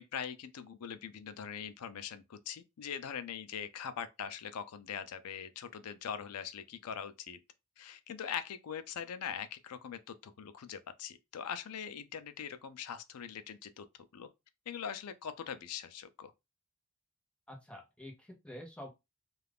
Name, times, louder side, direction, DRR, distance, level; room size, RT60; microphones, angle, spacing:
voice 1, 0.0-7.4 7.8-13.9 14.1-14.3 14.7-16.3, left 8 dB, 90° left, 0.4 m, -42 dB
voice 2, 17.5-18.9, left 1 dB, 5° left, 0.7 m, -48 dB
2.4 x 2.4 x 3.3 m
head